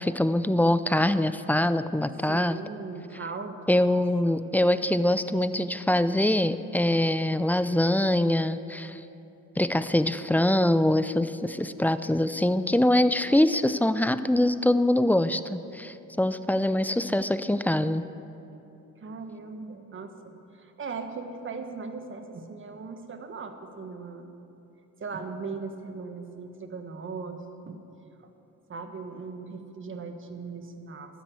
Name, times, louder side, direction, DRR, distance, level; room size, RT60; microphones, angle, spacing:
voice 1, 0.0-2.6 3.7-9.0 9.6-18.0, left 1 dB, 5° left, 13 dB, 0.4 m, -24 dB
voice 2, 2.3-4.0 19.0-24.3 25.0-27.8 28.7-31.2, right 4 dB, 40° right, 6 dB, 1.4 m, -39 dB
12.5 x 10.5 x 7.8 m, 2.9 s
cardioid pair, 90°, 30 cm